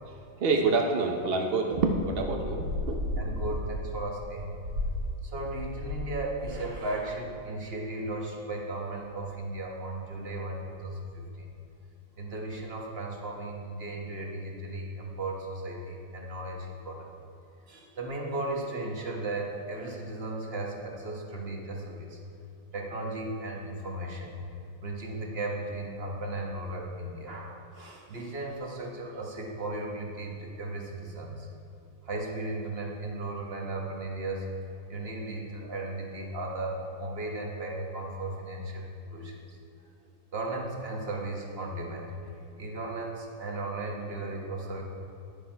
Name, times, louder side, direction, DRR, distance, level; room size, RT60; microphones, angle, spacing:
voice 1, 0.4-3.6, right 3 dB, 80° right, 3 dB, 0.5 m, -27 dB
sound 1, 1.9-6.1 6.4-6.7, left 1 dB, 60° right, 3.0 m, -34 dB
voice 2, 3.2-4.6 5.2-11.5 12.2-17.1 17.7-22.2 22.7-24.3 24.8-31.5 32.0-34.5 34.9-39.4 40.3-42.1 42.6-44.8, right 2 dB, 35° right, -1 dB, 1.3 m, -36 dB
10.5 x 10.0 x 4.5 m, 2.7 s
omnidirectional pair, 2.2 m